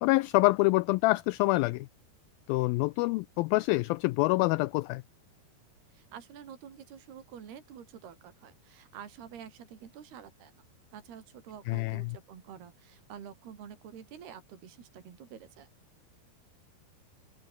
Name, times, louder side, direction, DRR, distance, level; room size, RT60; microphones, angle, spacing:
voice 1, 0.0-1.9 2.5-5.0 11.7-12.2, left 21 dB, 85° left, 2.1 m, -26 dB
voice 2, 5.9-10.6 10.9-15.7, right 8 dB, 75° right, 5.1 m, -48 dB
open air
omnidirectional pair, 4.7 m